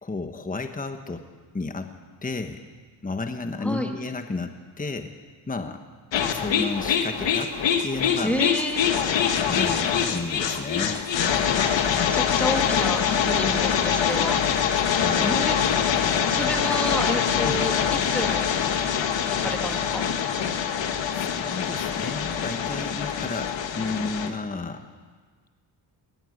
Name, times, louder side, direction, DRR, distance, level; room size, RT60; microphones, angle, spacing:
voice 1, 0.0-1.2 1.5-1.9 2.2-2.6 3.0-5.1 5.5-5.8 6.3-7.5 7.8-8.3 9.4-11.0 14.9-15.5 17.4-17.6 21.1-24.8, left 3 dB, 20° left, 6 dB, 1.3 m, -32 dB
voice 2, 3.6-3.9 6.5-6.8 8.2-8.8 11.7-14.4 15.2-15.6 16.3-17.8 18.1-18.5 19.3-20.0, equal, 5° left, 3 dB, 2.5 m, -30 dB
sound 1, 6.1-24.3, left 8 dB, 80° left, 1.5 m, -24 dB
18.5 x 14.5 x 9.6 m, 1.5 s
cardioid pair, 105°, 44 cm